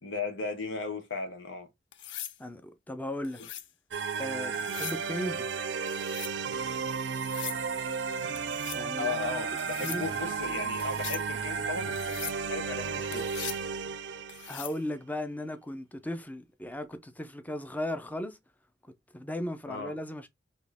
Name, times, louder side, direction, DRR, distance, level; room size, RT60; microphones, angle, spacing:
voice 1, 0.0-1.7 9.0-13.3 19.7-19.9, left 4 dB, 90° left, 1.0 m, -36 dB
sound 1, 1.9-2.4 3.2-3.7 4.5-5.0 5.9-6.4 7.1-7.6 8.4-8.8 9.6-10.0 10.8-11.3 12.0-12.4 13.1-13.6 14.3-14.8 16.7-17.0, left 11 dB, 75° left, 0.5 m, -41 dB
voice 2, 2.4-3.4 4.2-5.5 8.7-9.1 9.8-10.1 14.5-18.4 19.1-20.3, left 1 dB, 10° left, 0.5 m, -36 dB
sound 2, 3.9-14.7, right 5 dB, 65° right, 0.5 m, -33 dB
4.3 x 2.8 x 3.4 m
head